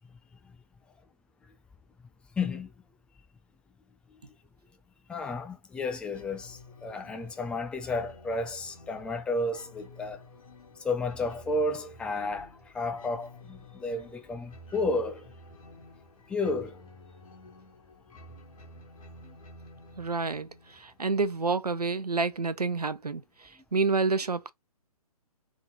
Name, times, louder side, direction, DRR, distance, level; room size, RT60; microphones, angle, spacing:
voice 1, 2.4-2.7 5.1-10.2 10.8-15.3 16.3-16.8 19.2-19.3, left 2 dB, 5° left, 0.4 m, -32 dB
sound 1, 6.1-21.6, left 1 dB, 60° left, 1.6 m, -52 dB
voice 2, 20.0-24.5, right 4 dB, 85° right, 0.7 m, -29 dB
3.8 x 3.7 x 2.6 m
figure-of-eight pair, 130°, 19 cm